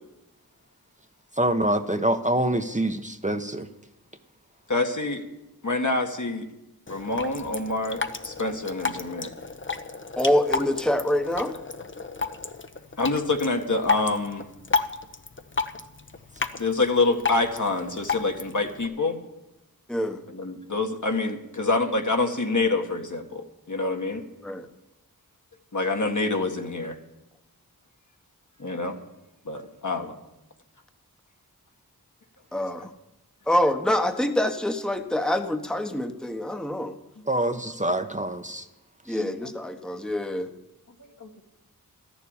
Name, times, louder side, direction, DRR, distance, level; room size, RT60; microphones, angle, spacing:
voice 1, 1.4-3.7 37.3-38.6, right 1 dB, 20° right, 6 dB, 1.0 m, -25 dB
voice 2, 4.7-5.2 5.6-6.5 6.9-9.3 13.0-14.4 16.6-19.2 20.3-24.2 25.7-27.0 28.6-29.0 29.5-30.2 39.1-39.3 41.2-41.4, left 3 dB, 50° left, 4 dB, 1.8 m, -26 dB
Drip, 6.9-18.9, left 4 dB, 30° left, 0.9 m, -32 dB
voice 3, 10.2-11.6 19.9-20.2 24.4-24.7 32.5-32.9 33.5-36.9 39.1-40.5, left 1 dB, ahead, 6 dB, 1.1 m, -25 dB
13.5 x 7.1 x 9.9 m, 0.95 s
wide cardioid pair, 40°, 37 cm